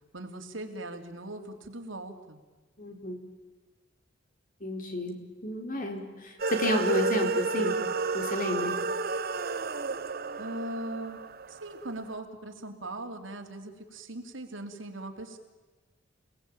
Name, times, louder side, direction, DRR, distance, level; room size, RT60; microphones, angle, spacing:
voice 1, 0.1-2.4 10.4-11.2 11.5-15.4, right 1 dB, 85° right, 5 dB, 3.2 m, -39 dB
voice 2, 2.8-3.3 4.6-7.8 8.1-8.8, left 1 dB, 45° left, 5 dB, 4.2 m, -31 dB
sound 1, 6.4-11.8, right 3 dB, 50° right, 1.1 m, -31 dB
28.5 x 19.0 x 8.9 m, 1.3 s
head